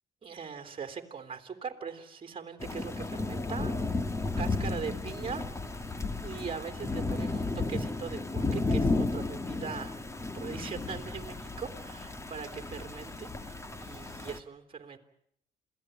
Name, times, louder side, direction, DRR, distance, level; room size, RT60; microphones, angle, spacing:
voice 1, 0.2-3.7 4.4-5.9 6.2-15.0, right 6 dB, 30° right, 7 dB, 3.2 m, -41 dB
Thunder / Rain, 2.6-14.4, left 3 dB, 15° left, 1.7 m, -33 dB
27.5 x 17.0 x 9.0 m, 0.74 s
cardioid pair, 110°, 17 cm